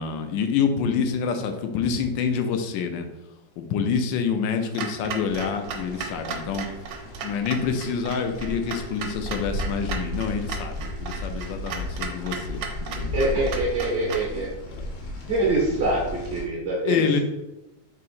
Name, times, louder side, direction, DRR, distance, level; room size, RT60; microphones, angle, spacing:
voice 1, 0.0-3.1 3.6-6.7 7.2-13.2 14.7-14.8 15.2-15.3 16.8-17.2, left 6 dB, 80° left, 6 dB, 1.3 m, -27 dB
Clock, 4.7-14.3, right 6 dB, 80° right, 1.2 m, -36 dB
sound 1, 5.2-16.5, left 1 dB, 60° left, 1.2 m, -35 dB
voice 2, 13.1-14.6 15.3-17.2, right 2 dB, 55° right, -4 dB, 0.8 m, -25 dB
3.7 x 2.8 x 4.2 m, 0.97 s
omnidirectional pair, 2.0 m